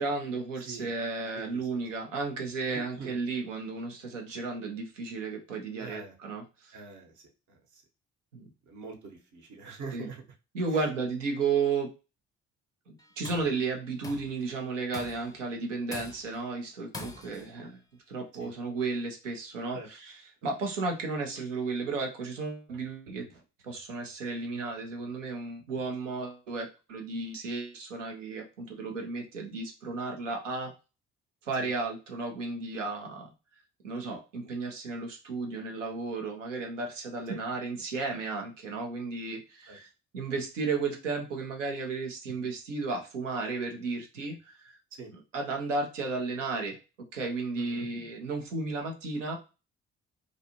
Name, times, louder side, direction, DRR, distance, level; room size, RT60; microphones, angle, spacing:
voice 1, 0.0-6.7 8.3-8.5 9.9-10.1 10.5-11.9 12.9-17.8 18.1-19.8 20.4-23.3 23.6-30.7 31.4-33.3 33.8-39.9 40.1-44.8 45.3-46.8 47.1-49.4, right 4 dB, 90° right, 3 dB, 0.6 m, -33 dB
voice 2, 1.3-1.8 2.4-3.2 5.8-6.2 6.7-7.8 8.7-10.2 10.7-10.9 18.4-18.5 19.7-19.9 20.4-20.5 31.6-31.7 37.3-37.4 39.7-39.8 44.9-45.1 47.5-47.9, right 4 dB, 55° right, 3 dB, 0.9 m, -44 dB
Tools, 13.0-13.6 14.0-14.4 14.9-15.4 15.9-16.4 16.9-17.5, left 3 dB, 10° left, 0.4 m, -43 dB
2.5 x 2.4 x 2.8 m, 0.30 s
figure-of-eight pair, 45°, 36 cm